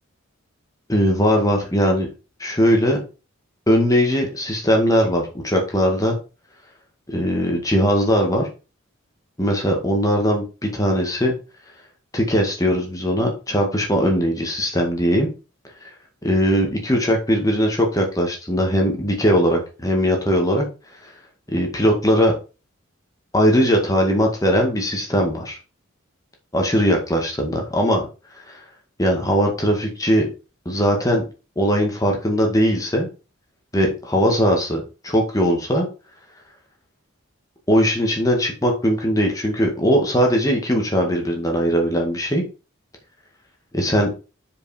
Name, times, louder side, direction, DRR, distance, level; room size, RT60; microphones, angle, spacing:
voice 1, 0.9-2.1 2.4-3.0 3.7-6.2 7.1-8.5 9.4-11.3 12.1-15.3 15.8-15.9 16.2-20.7 21.5-22.3 23.3-25.6 26.5-28.1 28.5-28.6 29.0-30.3 30.7-31.2 31.6-33.1 33.7-35.9 37.7-42.4 43.7-44.1, equal, 15° left, 1 dB, 1.8 m, -20 dB
6.5 x 5.3 x 4.9 m, 0.32 s
head